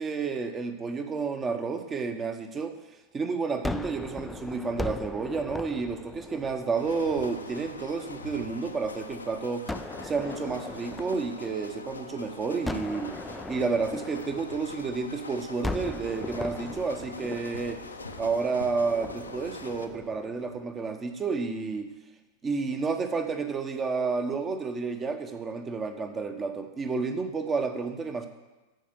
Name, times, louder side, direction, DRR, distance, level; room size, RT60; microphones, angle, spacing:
voice 1, 0.0-2.7 3.1-9.7 10.0-13.1 13.5-17.8 18.2-21.9 22.4-28.3, right 4 dB, 20° right, 7 dB, 1.1 m, -30 dB
Gunshot gunfire, 3.6-8.8 9.7-12.1 12.7-15.1 15.6-20.8, left 2 dB, 5° left, 0.4 m, -39 dB
sound 1, 6.8-19.9, left 3 dB, 80° left, 0.7 m, -43 dB
14.0 x 5.2 x 7.0 m, 1.1 s
figure-of-eight pair, 90°, 0 cm